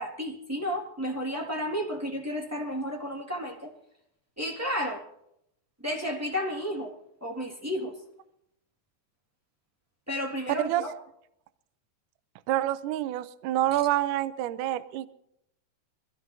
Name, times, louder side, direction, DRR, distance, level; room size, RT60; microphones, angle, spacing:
voice 1, 0.0-3.7 4.4-5.0 5.8-6.9 7.2-7.9 10.1-10.9, equal, 20° right, 0 dB, 0.4 m, -32 dB
voice 2, 12.5-15.1, right 14 dB, 80° right, 14 dB, 1.9 m, -27 dB
25.0 x 16.0 x 2.8 m, 0.78 s
omnidirectional pair, 4.3 m